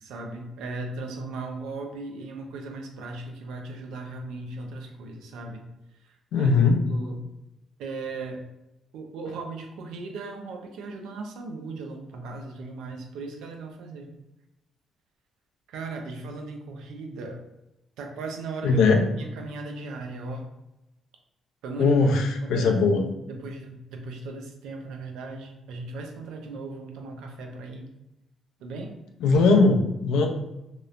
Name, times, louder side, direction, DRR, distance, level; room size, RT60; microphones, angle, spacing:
voice 1, 0.0-5.7 6.3-7.2 7.8-8.4 8.9-14.1 15.7-17.4 18.0-18.8 19.1-20.5 21.6-22.0 22.4-27.9 28.6-28.9, right 3 dB, 85° right, 3 dB, 0.4 m, -37 dB
voice 2, 6.3-6.8 18.6-19.1 21.8-23.0 29.2-30.3, left 4 dB, 90° left, 2 dB, 0.4 m, -20 dB
2.9 x 2.0 x 2.4 m, 0.93 s
cardioid pair, 90°, 0 cm